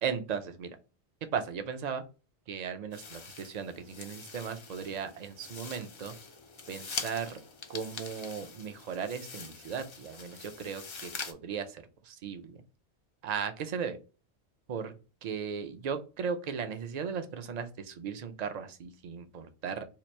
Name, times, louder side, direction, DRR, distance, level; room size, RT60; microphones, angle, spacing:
voice 1, 0.0-0.8 1.3-2.0 2.5-6.1 6.7-7.4 7.7-12.6 13.2-14.0 14.7-14.9 15.2-19.9, right 6 dB, 50° right, 8 dB, 0.5 m, -36 dB
sound 1, 2.9-11.3, left 4 dB, 45° left, 0.3 m, -44 dB
2.9 x 2.5 x 4.2 m, 0.33 s
omnidirectional pair, 1.1 m